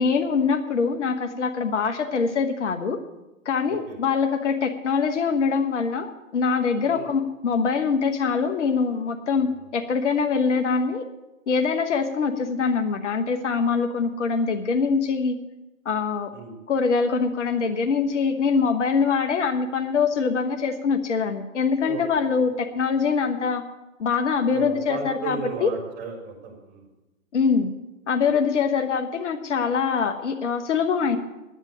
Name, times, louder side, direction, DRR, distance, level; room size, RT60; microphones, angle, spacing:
voice 1, 0.0-3.0 3.4-11.1 11.5-15.4 15.8-16.3 16.7-23.6 24.0-25.7 27.3-27.7 28.1-31.2, left 5 dB, 60° left, 6 dB, 1.2 m, -23 dB
voice 2, 9.3-9.7 16.3-16.6 21.8-22.5 24.5-26.9, right 5 dB, 25° right, 1 dB, 3.8 m, -35 dB
10.5 x 8.9 x 8.4 m, 1.0 s
figure-of-eight pair, 120°, 41 cm